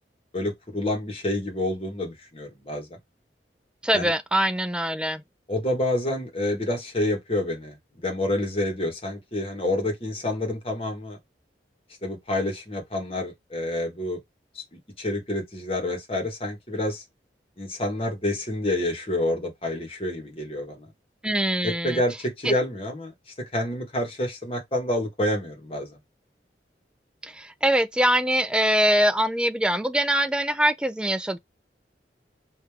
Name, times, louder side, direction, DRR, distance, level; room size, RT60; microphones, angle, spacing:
voice 1, 0.3-3.0 3.9-4.1 5.5-11.2 12.0-14.2 14.5-17.0 17.6-20.9 21.6-23.1 23.5-26.0, left 1 dB, 30° left, 1.5 m, -28 dB
voice 2, 3.8-5.2 21.2-22.0 22.4-22.5 27.2-31.4, right 1 dB, 5° right, 0.3 m, -23 dB
5.2 x 2.9 x 3.5 m
head